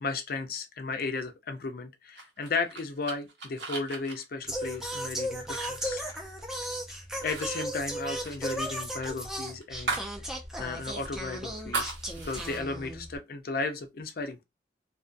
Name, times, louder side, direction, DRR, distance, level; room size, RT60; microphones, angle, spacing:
voice 1, 0.0-6.0 6.9-10.0 10.6-11.9 12.2-14.4, left 3 dB, 55° left, 0.5 m, -35 dB
sound 1, 2.2-6.8 7.1-7.5 7.7-10.2 10.5-10.6 11.0-12.6, right 3 dB, 85° right, 0.8 m, -38 dB
Singing, 4.4-13.2, equal, 5° right, 0.5 m, -36 dB
2.5 x 2.2 x 2.5 m
head